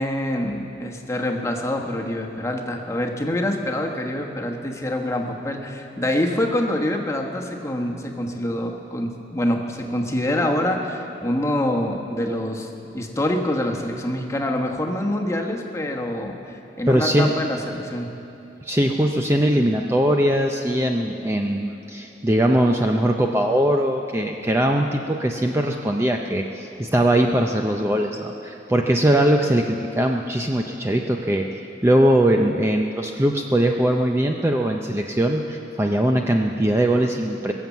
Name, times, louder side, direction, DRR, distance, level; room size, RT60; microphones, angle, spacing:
voice 1, 0.0-18.1, left 1 dB, 15° left, 1 dB, 1.2 m, -25 dB
voice 2, 16.9-17.3 18.6-31.4 31.8-37.5, right 1 dB, 15° right, 2 dB, 0.5 m, -21 dB
22.0 x 7.7 x 7.2 m, 2.9 s
head